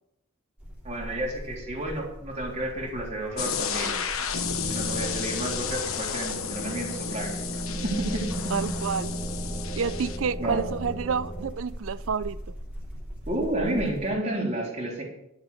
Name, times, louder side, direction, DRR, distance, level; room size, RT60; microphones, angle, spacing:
sound 1, 0.6-14.1, equal, 10° right, 3.3 m, -40 dB
voice 1, 0.8-4.0 4.5-8.3 10.4-10.6 13.3-15.0, right 1 dB, 35° right, 3.7 m, -31 dB
sound 2, 3.4-10.2, left 7 dB, 80° left, 1.1 m, -32 dB
sound 3, 4.3-11.5, right 2 dB, 15° left, 1.4 m, -36 dB
voice 2, 8.5-9.2 9.8-12.4, right 6 dB, 70° right, 0.5 m, -29 dB
11.5 x 7.3 x 6.6 m
head